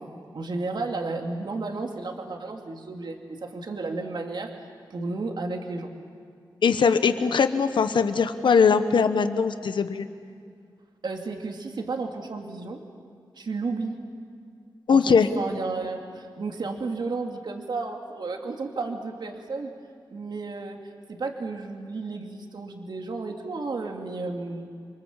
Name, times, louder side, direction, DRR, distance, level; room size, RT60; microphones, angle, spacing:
voice 1, 0.0-4.5 4.9-5.9 11.0-12.8 13.4-14.0 14.9-19.7 20.1-20.8 21.1-24.6, right 3 dB, 70° right, 2 dB, 2.7 m, -33 dB
voice 2, 6.6-10.1 14.9-15.3, left 6 dB, 85° left, 9 dB, 1.1 m, -21 dB
29.5 x 24.5 x 7.5 m, 2.3 s
wide cardioid pair, 95°, 8 cm